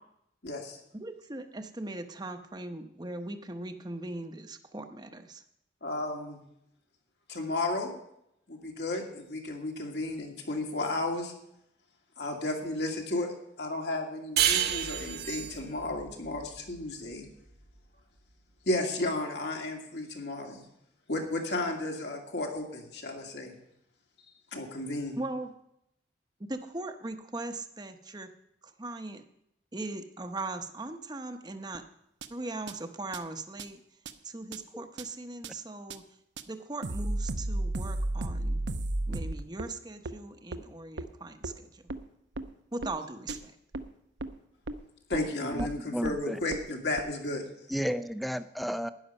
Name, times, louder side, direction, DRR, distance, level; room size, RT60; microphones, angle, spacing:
voice 1, 0.4-0.8 5.8-6.4 7.3-7.9 8.5-11.3 12.2-17.3 18.7-20.7 21.1-23.5 24.5-25.2 45.1-47.4, left 2 dB, 65° left, 1 dB, 2.2 m, -33 dB
voice 2, 0.9-5.4 25.2-25.5 26.4-28.3 28.6-29.2 29.7-31.8 32.3-33.8 34.2-36.0 36.5-38.6 39.1-41.8 42.7-43.5, right 2 dB, 25° right, 7 dB, 0.9 m, -39 dB
sound 1, 14.4-17.5, right 10 dB, 55° right, 1.1 m, -30 dB
sound 2, 31.7-31.8 32.2-32.3 32.7-32.8 33.1-33.2 33.6-33.7 34.1-34.2 34.5-34.6 35.0-35.1 35.4-35.5 35.9-36.0 36.4-36.5 36.8-39.7 40.1-40.2 40.5-40.6 41.0-41.1 41.4-41.5 41.9-42.0 42.4-42.5 42.8-42.9 43.3-43.4 43.7-43.8 44.2-44.3 44.7-44.8 45.1-45.2 45.6-45.7 46.0-46.2 46.5-46.6 47.0-47.1, right 2 dB, 80° right, 0.8 m, -33 dB
voice 3, 45.6-46.4 47.7-48.9, equal, ahead, 12 dB, 0.4 m, -32 dB
12.0 x 10.0 x 5.4 m, 0.78 s
head